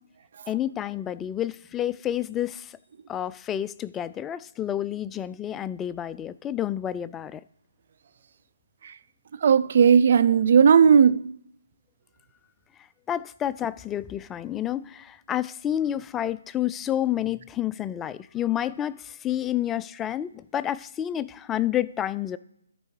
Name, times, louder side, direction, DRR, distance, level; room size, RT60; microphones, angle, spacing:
voice 1, 0.5-2.8 3.1-7.4 13.1-22.4, left 11 dB, 10° left, 0.3 m, -29 dB
voice 2, 9.4-11.3, right 7 dB, 50° right, 0.6 m, -16 dB
13.5 x 4.6 x 4.7 m
figure-of-eight pair, 150°, 0 cm